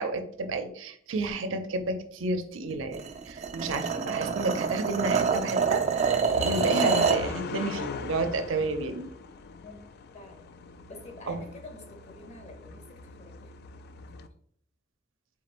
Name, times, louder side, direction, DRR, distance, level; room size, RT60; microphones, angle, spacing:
voice 1, 0.0-9.1 11.3-11.4, right 2 dB, 85° right, 8 dB, 0.5 m, -31 dB
sound 1, 2.9-7.3, right 6 dB, 35° right, 0.4 m, -26 dB
sound 2, 5.3-14.3, left 4 dB, 55° left, 0.3 m, -39 dB
voice 2, 10.1-10.5 10.9-13.5 14.0-14.2, left 2 dB, 35° left, 3 dB, 0.8 m, -48 dB
3.7 x 2.5 x 4.2 m, 0.64 s
head